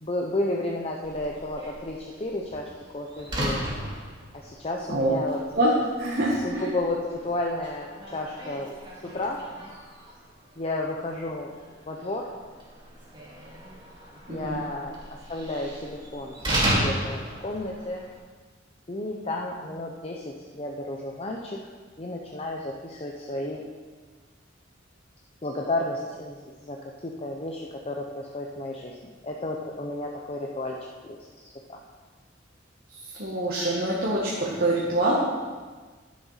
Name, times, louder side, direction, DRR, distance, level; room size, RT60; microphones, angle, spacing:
voice 1, 0.0-3.6 4.3-5.4 6.4-8.7 9.1-9.4 10.6-11.5 11.9-12.3 14.3-18.0 18.9-21.6 22.0-23.6 25.4-26.8 27.0-30.8 31.0-31.8, left 2 dB, 30° left, 0 dB, 0.8 m, -32 dB
Slam, 1.0-18.2, right 1 dB, 25° right, 2.8 m, -35 dB
voice 2, 6.0-6.7 14.3-14.6 33.2-35.1, right 1 dB, 50° right, -5 dB, 1.7 m, -25 dB
10.0 x 7.4 x 5.8 m, 1.4 s
head